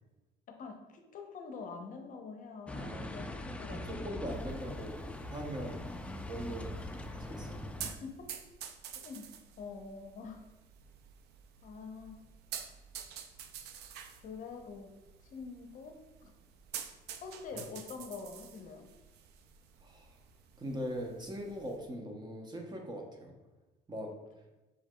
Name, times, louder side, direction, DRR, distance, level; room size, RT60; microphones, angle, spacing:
voice 1, 0.6-3.9 6.6-6.8 7.8-8.3 8.9-9.3 9.6-10.4 11.6-12.2 14.2-14.9 15.2-16.3 17.2-18.9, left 4 dB, 50° left, 4 dB, 0.7 m, -46 dB
sound 1, 2.7-7.9, left 1 dB, 5° left, 0.3 m, -42 dB
voice 2, 2.8-3.2 3.5-5.0 5.3-5.8 6.2-7.7 17.5-17.6 19.8-20.1 20.6-23.3 23.9-24.1, equal, 25° right, 2 dB, 0.7 m, -41 dB
sound 2, 4.3-21.8, right 8 dB, 75° right, 0.5 m, -49 dB
4.9 x 4.6 x 2.2 m, 1.1 s
cardioid pair, 110°, 17 cm